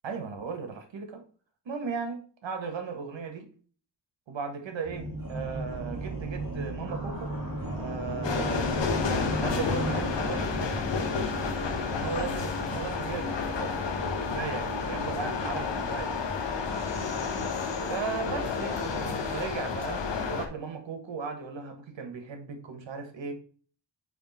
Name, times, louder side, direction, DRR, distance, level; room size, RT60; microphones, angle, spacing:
voice 1, 0.0-1.2 1.6-3.5 4.3-7.4 7.7-8.7 9.4-10.5 11.6-16.1 17.8-23.3, right 5 dB, 80° right, 1.6 m, -37 dB
sound 1, 4.8-19.7, right 1 dB, 45° right, 1.8 m, -37 dB
sound 2, 8.2-20.5, left 5 dB, 70° left, 1.1 m, -31 dB
5.4 x 4.4 x 4.1 m
wide cardioid pair, 180°, 44 cm